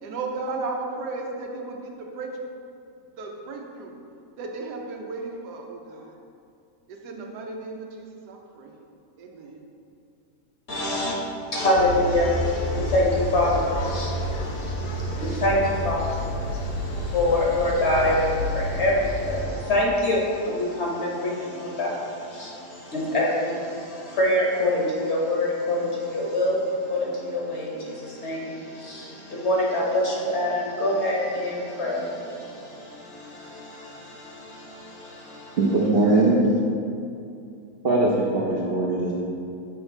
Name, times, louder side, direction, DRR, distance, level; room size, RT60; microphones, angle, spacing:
voice 1, 0.0-2.3 3.2-3.9 4.4-6.2 6.9-8.7 9.2-9.6, right 3 dB, 90° right, 1 dB, 1.3 m, -35 dB
voice 2, 10.7-11.2 11.5-35.6 35.9-36.0, left 1 dB, 50° left, -3 dB, 1.0 m, -26 dB
sound 1, 11.7-19.5, left 1 dB, 80° left, 1.2 m, -30 dB
voice 3, 35.6-36.4 37.8-39.1, right 2 dB, 60° right, -5 dB, 0.6 m, -20 dB
6.2 x 3.2 x 4.9 m, 2.5 s
omnidirectional pair, 1.7 m